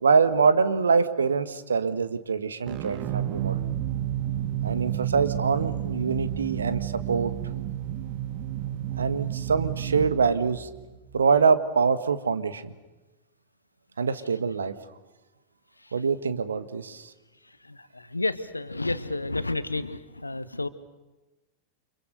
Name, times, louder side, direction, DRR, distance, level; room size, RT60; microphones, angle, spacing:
voice 1, 0.0-3.6 4.6-7.3 9.0-10.7 11.1-12.7 14.0-14.7 15.9-17.1, right 5 dB, 70° right, 12 dB, 1.7 m, -24 dB
sound 1, 2.7-11.4, right 12 dB, 40° right, 1.6 m, -31 dB
voice 2, 17.6-20.7, left 2 dB, 85° left, 14 dB, 1.4 m, -31 dB
30.0 x 26.0 x 6.8 m, 1.1 s
figure-of-eight pair, 90°, 0 cm